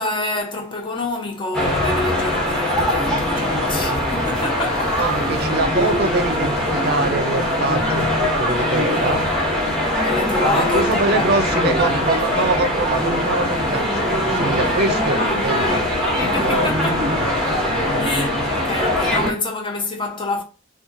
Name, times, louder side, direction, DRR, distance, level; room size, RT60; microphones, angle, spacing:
voice 1, 0.0-5.1 8.0-8.1 10.0-11.5 15.2-17.1 18.0-20.4, left 3 dB, 25° left, 0.6 m, -27 dB
sound 1, 1.5-19.3, left 1 dB, 5° left, 0.9 m, -21 dB
voice 2, 5.0-9.2 10.4-13.9 14.3-15.7 16.4-16.8 17.6-18.0, right 2 dB, 50° right, 0.5 m, -24 dB
3.0 x 2.3 x 3.6 m
head